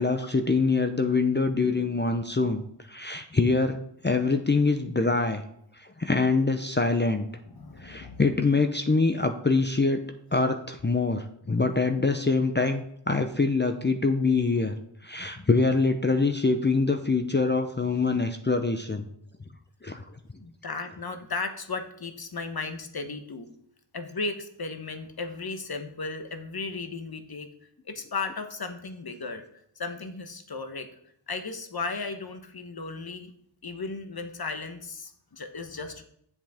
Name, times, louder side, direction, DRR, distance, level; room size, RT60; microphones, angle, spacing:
voice 1, 0.0-2.6 2.9-3.8 4.0-5.4 5.8-7.3 7.8-10.0 10.3-14.7 15.0-19.0 19.8-20.0, left 3 dB, 25° left, 6 dB, 0.6 m, -24 dB
voice 2, 7.4-8.2 20.4-23.5 23.9-27.5 27.8-29.4 29.8-30.9 31.3-33.3 33.6-36.0, left 3 dB, 55° left, 8 dB, 1.0 m, -35 dB
8.2 x 7.6 x 3.6 m, 0.71 s
wide cardioid pair, 50°, 45 cm